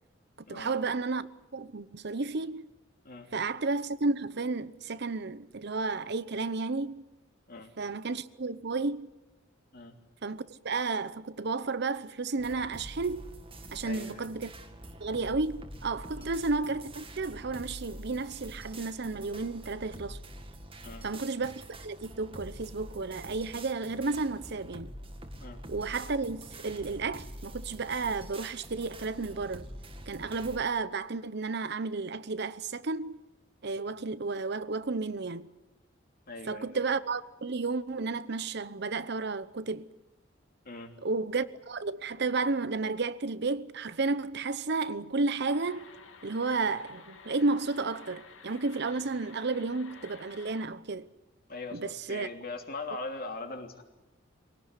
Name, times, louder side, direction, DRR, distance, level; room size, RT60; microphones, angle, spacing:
voice 1, 0.5-1.3 1.5-2.7 3.3-7.0 7.8-9.1 10.2-13.3 13.7-14.5 15.0-20.2 21.0-24.9 25.7-29.6 30.1-33.2 33.6-35.5 36.5-39.9 41.0-45.9 46.2-51.1 51.7-52.3, right 3 dB, 55° right, 0.8 m, -32 dB
sound 1, 12.4-30.6, right 1 dB, 30° right, 2.0 m, -46 dB
voice 2, 13.8-14.2 16.1-16.3 20.8-21.1 25.4-25.6 30.2-30.3 36.3-36.8 40.6-40.9 46.5-46.6 51.5-53.8, left 3 dB, 50° left, 3.0 m, -41 dB
sound 2, 45.4-50.7, left 5 dB, 85° left, 2.2 m, -52 dB
23.5 x 17.5 x 9.8 m
head